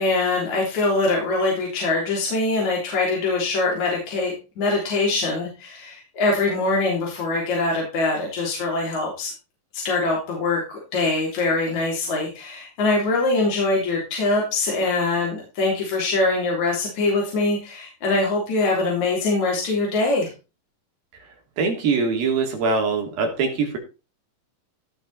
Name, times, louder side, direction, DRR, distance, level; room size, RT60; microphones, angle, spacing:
voice 1, 0.0-9.3 9.7-20.3, left 3 dB, 55° left, -2 dB, 4.6 m, -23 dB
voice 2, 21.6-23.8, right 4 dB, 85° right, 2 dB, 4.7 m, -22 dB
16.5 x 6.1 x 4.2 m, 0.30 s
omnidirectional pair, 4.1 m